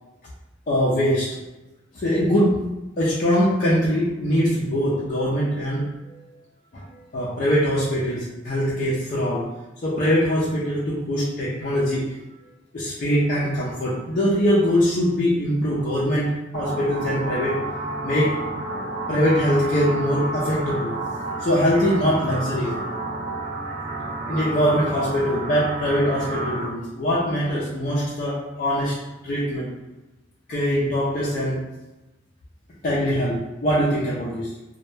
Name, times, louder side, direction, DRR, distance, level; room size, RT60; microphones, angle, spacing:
voice 1, 0.7-1.4 1.9-2.6 3.0-6.2 6.7-9.5 9.8-12.2 12.7-17.6 18.0-18.4 19.1-21.0 21.4-22.8 24.3-29.8 30.5-31.6 32.8-34.5, equal, 45° left, -7 dB, 0.4 m, -22 dB
sound 1, 16.5-26.7, right 2 dB, 30° right, 0.4 m, -30 dB
2.1 x 2.0 x 3.1 m, 1.0 s
head